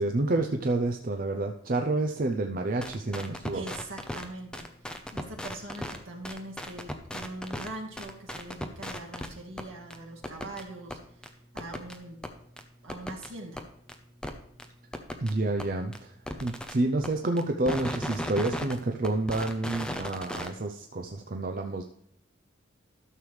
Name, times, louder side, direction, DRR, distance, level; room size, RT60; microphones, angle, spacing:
voice 1, 0.0-3.6 15.2-16.1 16.4-21.8, right 2 dB, 45° right, 4 dB, 0.6 m, -29 dB
Micro Jammers - Drums, 2.8-4.2 4.5-6.0 6.2-7.7 8.0-9.3 9.6-9.7 9.9-10.0 10.2-10.6 10.9-11.0 11.2-11.3 11.6-12.0 12.2-12.3 12.6-12.7 12.9-13.3 13.6-13.7 13.9-14.0 14.2-14.3 14.6-14.7 14.9-15.3 15.6-15.7 15.9-16.0 16.2-16.7 17.0-17.1 17.4-18.8 19.0-20.5, equal, 5° left, 0.7 m, -35 dB
voice 2, 3.5-4.7 5.1-12.2 12.8-13.6, right 2 dB, 85° right, 0 dB, 2.0 m, -42 dB
12.5 x 6.7 x 3.2 m, 0.72 s
head